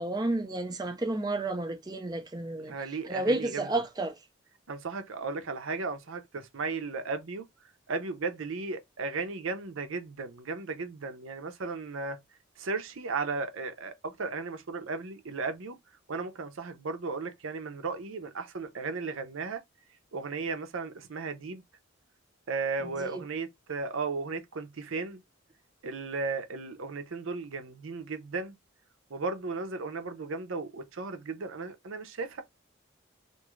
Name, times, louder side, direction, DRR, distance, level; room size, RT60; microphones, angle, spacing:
voice 1, 0.0-2.7 3.1-4.1 23.0-23.2, right 2 dB, 20° right, 0.5 m, -31 dB
voice 2, 2.6-3.7 4.7-7.5 7.9-12.2 12.6-15.8 16.1-19.6 20.1-21.6 22.5-25.2 25.8-28.5 29.1-32.4, right 4 dB, 85° right, 0.7 m, -35 dB
2.6 x 2.4 x 3.0 m
head